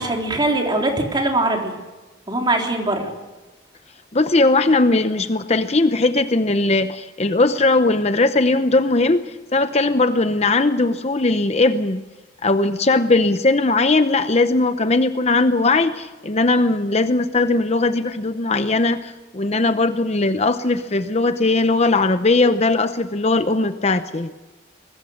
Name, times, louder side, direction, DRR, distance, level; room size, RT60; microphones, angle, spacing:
voice 1, 0.0-1.7 2.3-3.1, right 2 dB, 25° right, 1 dB, 3.6 m, -21 dB
voice 2, 4.1-12.0 12.4-24.3, left 2 dB, 35° left, 10 dB, 0.8 m, -19 dB
24.5 x 20.0 x 6.5 m, 1.2 s
head